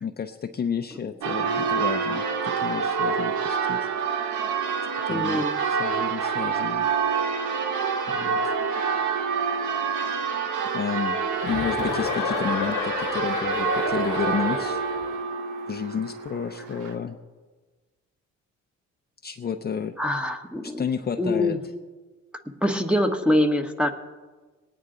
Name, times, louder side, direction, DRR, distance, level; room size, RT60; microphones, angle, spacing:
voice 1, 0.0-3.9 5.1-6.9 8.1-8.5 10.7-14.8 15.7-17.2 19.2-19.9 20.6-21.6, left 7 dB, 35° left, 4 dB, 0.6 m, -31 dB
Church bell, 1.2-16.9, right 6 dB, 75° right, 1.1 m, -27 dB
voice 2, 5.1-5.6 20.0-20.8 21.2-21.6 22.4-23.9, left 1 dB, 5° right, 6 dB, 1.1 m, -24 dB
Chuckle chortle, 11.4-15.1, left 7 dB, 85° left, 1.1 m, -30 dB
19.5 x 9.4 x 3.8 m, 1.3 s
cardioid pair, 90°, 30 cm